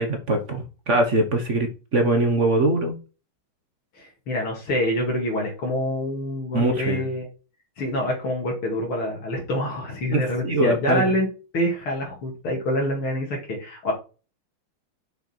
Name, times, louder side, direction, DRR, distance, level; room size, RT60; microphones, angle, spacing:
voice 1, 0.0-3.0 6.5-7.1 10.1-11.0, right 2 dB, 45° right, 5 dB, 1.2 m, -22 dB
voice 2, 3.9-7.3 7.8-11.3 11.5-13.9, left 1 dB, 80° left, -1 dB, 3.3 m, -26 dB
6.5 x 5.9 x 4.5 m, 0.33 s
omnidirectional pair, 2.3 m